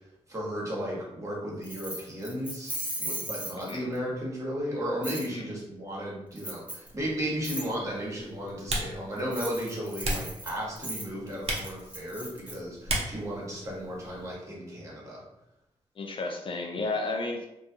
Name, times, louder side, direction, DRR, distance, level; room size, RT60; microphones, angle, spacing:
voice 1, 0.3-2.7 3.0-15.2, equal, 25° right, -5 dB, 1.1 m, -34 dB
Keys jangling, 1.6-4.0 5.0-5.3 6.4-6.9 7.4-7.7 9.2-12.6, right 1 dB, 10° right, 0.6 m, -37 dB
voice 2, 3.6-3.9 5.3-5.5 16.0-17.5, left 2 dB, 45° left, 2 dB, 0.3 m, -33 dB
Typing, 6.9-14.4, right 1 dB, 60° right, 0.6 m, -37 dB
2.3 x 2.2 x 2.7 m, 0.89 s
cardioid pair, 65°, 12 cm